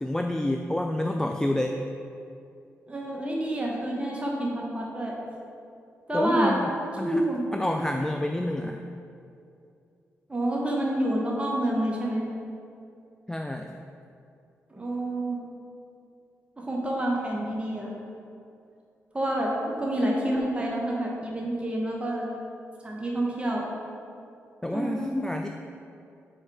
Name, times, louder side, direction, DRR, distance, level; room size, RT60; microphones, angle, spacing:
voice 1, 0.0-1.8 6.1-7.2 7.5-8.8 13.3-13.8 24.6-25.5, left 1 dB, 10° left, 3 dB, 0.3 m, -28 dB
voice 2, 2.9-5.1 6.1-6.6 7.0-7.4 10.3-12.2 14.7-15.4 16.6-17.9 19.1-22.3 22.8-23.7 24.7-25.2, right 1 dB, 20° right, -3 dB, 1.1 m, -28 dB
4.6 x 4.3 x 4.8 m, 2.5 s
supercardioid pair, 50°, 6 cm